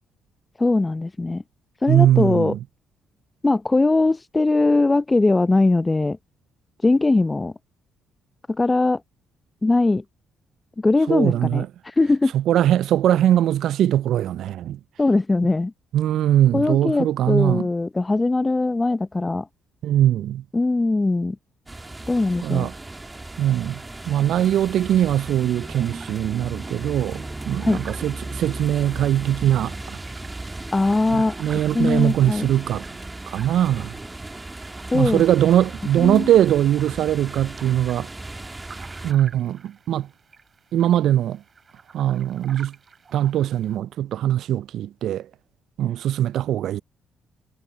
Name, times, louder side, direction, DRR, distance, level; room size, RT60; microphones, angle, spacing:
voice 1, 0.6-1.4 1.8-2.5 3.4-6.2 6.8-7.5 8.5-9.0 9.6-10.0 10.8-11.6 12.0-12.3 15.0-15.7 16.5-19.5 20.5-21.4 22.1-22.7 27.6-27.8 30.7-31.4 31.7-32.5 34.9-35.2 36.0-36.3, left 2 dB, 25° left, 0.7 m, -20 dB
voice 2, 1.9-2.6 11.1-11.7 12.3-14.8 15.9-17.7 19.8-20.4 22.4-22.7 23.4-30.0 31.1-32.9 33.3-34.0 34.9-38.1 39.0-40.1 40.7-41.4 41.9-42.8 43.1-45.3 45.8-46.8, right 11 dB, 70° right, 0.3 m, -21 dB
sound 1, 21.7-39.1, right 2 dB, 20° right, 2.3 m, -36 dB
sound 2, 25.6-43.8, right 5 dB, 45° right, 7.2 m, -50 dB
hypercardioid pair, 50°, 0 cm